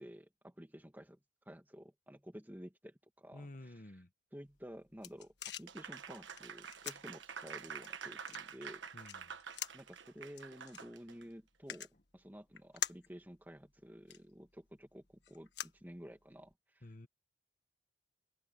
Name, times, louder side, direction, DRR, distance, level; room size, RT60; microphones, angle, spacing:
voice 1, 0.0-3.7 4.3-5.3 5.6-8.8 9.7-16.8, equal, 10° right, 2.4 m, -52 dB
voice 2, 3.3-4.1 8.9-9.3 16.8-17.1, left 1 dB, 45° left, 1.4 m, -51 dB
sound 1, 4.5-16.5, left 10 dB, 60° left, 1.5 m, -49 dB
Applause, 5.7-11.2, right 6 dB, 75° right, 1.4 m, -48 dB
open air
head